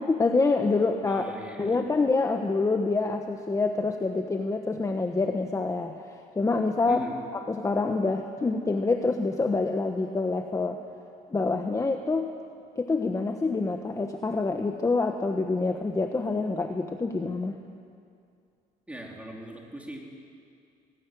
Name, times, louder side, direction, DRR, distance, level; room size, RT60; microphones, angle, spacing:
voice 1, 0.0-1.3 1.6-7.0 7.5-10.8 11.3-12.3 12.8-17.6, left 3 dB, 20° left, 5 dB, 1.2 m, -26 dB
voice 2, 1.0-1.9 6.9-7.1 18.9-20.0, right 1 dB, 5° right, -1 dB, 4.1 m, -40 dB
20.0 x 19.0 x 9.4 m, 2.4 s
cardioid pair, 110°, 17 cm